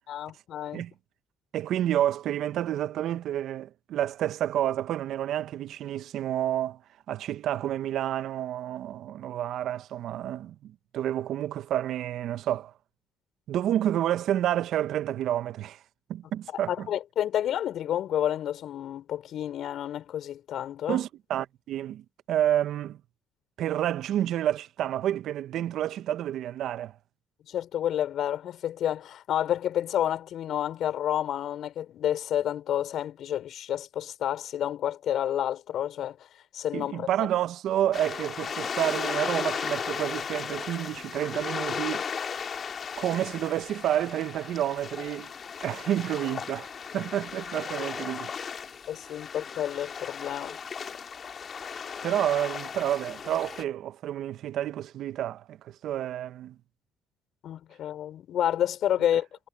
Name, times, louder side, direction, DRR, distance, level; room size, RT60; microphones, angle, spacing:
voice 1, 0.1-0.8 16.7-21.0 27.5-36.2 36.5-37.3 48.9-50.6 57.4-59.5, left 11 dB, 65° left, 5.6 m, -30 dB
voice 2, 1.5-6.8 7.1-12.7 13.5-15.8 16.1-16.9 20.9-23.0 23.6-27.0 36.7-42.1 43.0-45.3 45.6-48.3 52.0-56.6, right 11 dB, 70° right, 1.5 m, -29 dB
sound 1, 37.9-53.6, left 6 dB, 50° left, 2.4 m, -36 dB
hypercardioid pair, 55°, 0 cm